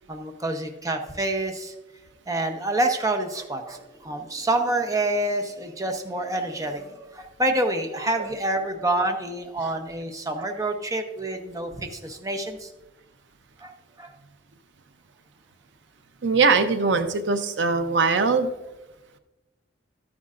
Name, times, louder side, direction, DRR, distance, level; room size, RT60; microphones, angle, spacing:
voice 1, 0.1-1.7 2.3-12.7 13.6-13.7 14.0-14.1, right 1 dB, 20° right, 5 dB, 0.8 m, -27 dB
voice 2, 16.2-18.5, right 4 dB, 80° right, 9 dB, 0.7 m, -21 dB
12.5 x 9.6 x 2.5 m, 1.0 s
head